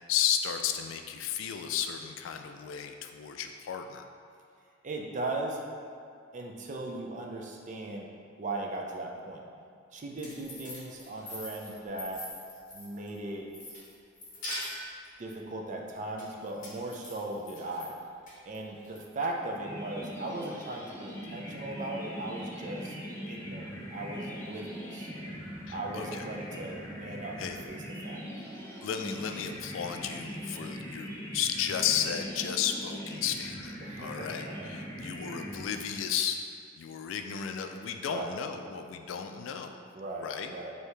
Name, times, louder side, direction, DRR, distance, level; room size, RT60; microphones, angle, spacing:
voice 1, 0.1-4.1 25.7-26.2 27.4-27.6 28.8-36.4 36.8-39.8 40.2-40.5, left 8 dB, 85° left, 6 dB, 0.3 m, -33 dB
voice 2, 4.8-5.6 6.3-8.1 8.4-9.5 9.9-12.2 12.7-13.5 15.2-18.0 18.4-22.9 23.3-25.1 25.7-28.2 33.8-34.7 38.0-38.3 39.9-40.7, right 2 dB, 40° right, 0 dB, 0.4 m, -38 dB
sound 1, 10.0-13.2 13.5-15.1 16.2-17.9 18.3-19.0, left 1 dB, 45° left, 1.0 m, -42 dB
sound 2, 19.6-36.2, equal, 15° left, 0.5 m, -41 dB
4.6 x 2.8 x 3.3 m, 2.3 s
head